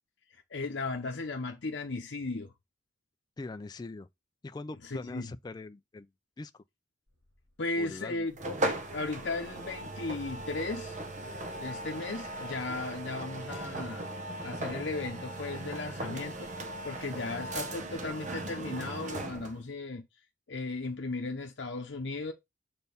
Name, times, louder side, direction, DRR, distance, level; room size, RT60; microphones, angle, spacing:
voice 1, 0.3-2.5 4.8-5.3 7.6-11.0 11.6-14.1 14.4-20.0 20.5-22.3, left 3 dB, 65° left, 0.8 m, -36 dB
voice 2, 3.4-4.1 4.4-6.1 6.4-6.6 7.8-8.3, left 3 dB, 20° left, 0.3 m, -42 dB
sound 1, 7.1-18.1, equal, 80° right, 2.2 m, -59 dB
sound 2, 8.4-19.6, right 1 dB, 40° right, 1.0 m, -38 dB
6.7 x 4.4 x 3.4 m
head